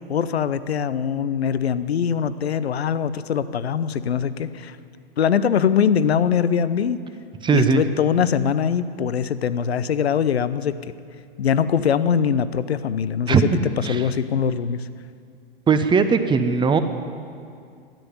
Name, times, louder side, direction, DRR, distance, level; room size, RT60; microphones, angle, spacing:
voice 1, 0.1-4.8 5.2-7.0 7.5-10.8 11.4-13.6 13.9-14.9, left 7 dB, 80° left, 14 dB, 0.7 m, -22 dB
voice 2, 7.4-7.8 13.3-14.0 15.7-16.8, right 5 dB, 15° right, 9 dB, 0.9 m, -19 dB
13.0 x 9.7 x 9.7 m, 2.3 s
hypercardioid pair, 105°, 31 cm